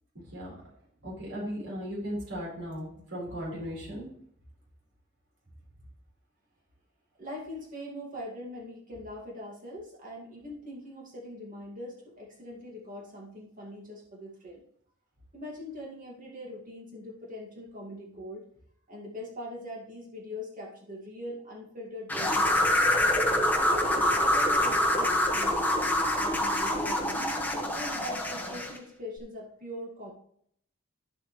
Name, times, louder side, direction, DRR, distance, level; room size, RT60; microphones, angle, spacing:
voice 1, 0.1-0.5 1.0-4.1, equal, 65° right, -4 dB, 4.5 m, -37 dB
voice 2, 7.2-14.6 15.3-18.5 18.9-22.9 23.6-25.8 26.1-27.3 27.7-30.1, left 1 dB, 40° right, -2 dB, 2.2 m, -42 dB
sound 1, 22.1-28.8, left 1 dB, 10° left, 1.2 m, -26 dB
11.5 x 7.6 x 3.2 m, 0.67 s
head